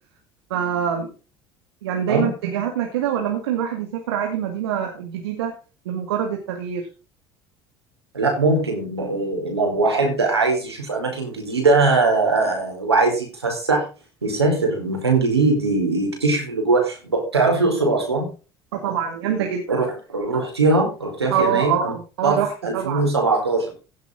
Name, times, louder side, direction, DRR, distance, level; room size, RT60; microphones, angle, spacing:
voice 1, 0.5-1.1 1.8-5.5 5.9-6.8 18.7-19.8 21.3-23.1, right 8 dB, 75° right, 3 dB, 2.1 m, -25 dB
voice 2, 8.1-13.9 14.2-18.3 19.7-21.9 22.2-23.7, right 3 dB, 90° right, 1 dB, 4.7 m, -21 dB
16.5 x 8.2 x 3.8 m, 0.33 s
figure-of-eight pair, 60°, 13 cm